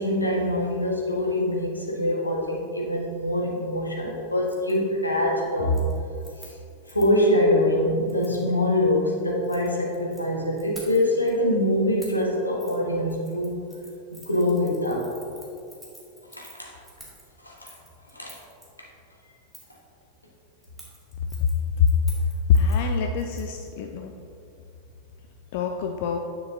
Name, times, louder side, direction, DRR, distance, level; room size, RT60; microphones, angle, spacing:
voice 1, 0.0-5.8 6.4-6.5 6.9-13.6 14.1-15.1 16.3-16.8 17.4-17.7 18.1-18.4 18.8-18.9, left 1 dB, 85° left, -2 dB, 1.3 m, -24 dB
Keys jangling, 4.4-4.8 5.1-5.4 5.7-7.2 8.1-8.4 9.3-10.2 10.6-11.3 12.0-12.3 12.6-12.8 13.1-18.7 19.5-19.8 20.6-23.7 24.0-24.1, right 1 dB, 5° right, 1.7 m, -49 dB
voice 2, 22.5-24.2 25.5-26.2, left 6 dB, 50° left, 4 dB, 0.4 m, -23 dB
9.4 x 6.7 x 2.6 m, 2.7 s
figure-of-eight pair, 90°, 0 cm